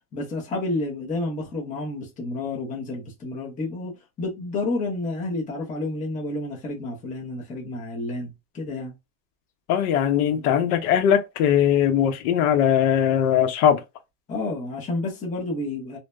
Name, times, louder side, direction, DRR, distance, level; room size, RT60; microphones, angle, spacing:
voice 1, 0.1-8.9 10.3-10.5 14.3-16.0, left 2 dB, 15° left, 0.7 m, -30 dB
voice 2, 9.7-13.8, left 9 dB, 60° left, 0.8 m, -20 dB
2.7 x 2.1 x 2.3 m
supercardioid pair, 145°, 48 cm